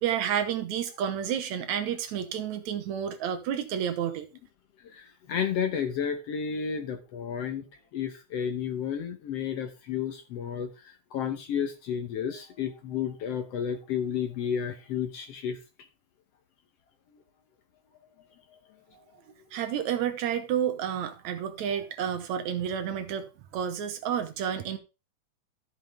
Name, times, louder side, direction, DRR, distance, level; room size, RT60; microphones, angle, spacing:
voice 1, 0.0-4.3 19.5-24.8, right 9 dB, 70° right, 2.2 m, -30 dB
voice 2, 4.8-7.7 7.9-15.6, left 8 dB, 65° left, 1.8 m, -32 dB
13.0 x 7.1 x 3.4 m
omnidirectional pair, 3.6 m